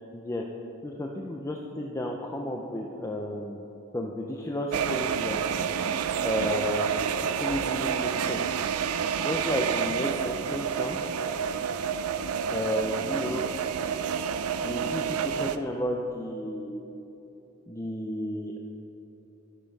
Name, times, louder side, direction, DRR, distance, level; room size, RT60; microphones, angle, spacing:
voice 1, 0.1-0.4 0.8-3.6 3.9-5.4 6.2-6.9 7.2-8.5 9.2-11.0 12.5-13.4 14.6-16.8 17.7-18.6, left 1 dB, 15° left, 0 dB, 0.5 m, -32 dB
sound 1, 4.7-15.6, right 7 dB, 85° right, 0.4 m, -29 dB
12.0 x 6.7 x 5.3 m, 3.0 s
head